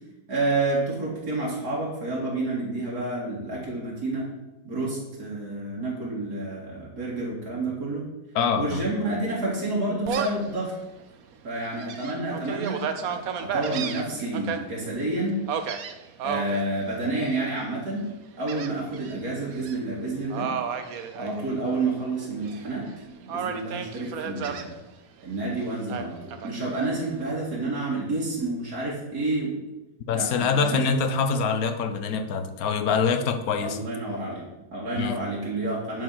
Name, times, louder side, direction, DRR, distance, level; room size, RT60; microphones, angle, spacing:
voice 1, 0.3-4.3 4.6-8.1 8.6-10.7 11.4-15.4 16.2-18.1 18.4-20.5 21.1-22.9 23.2-24.8 25.2-29.6 30.1-31.2 33.6-36.0, right 2 dB, 85° right, -4 dB, 2.9 m, -29 dB
voice 2, 8.3-8.8 30.1-33.8 35.0-35.2, left 5 dB, 70° left, 8 dB, 1.3 m, -25 dB
Gull seagull, 10.1-10.5 11.0-11.1 11.6-14.6 15.5-16.6 17.2-17.6 18.5-19.2 19.5-19.8 20.3-21.9 22.2-22.9 23.3-24.7 25.9-26.9, right 7 dB, 70° right, 1.2 m, -32 dB
11.0 x 4.9 x 5.8 m, 1.0 s
omnidirectional pair, 1.6 m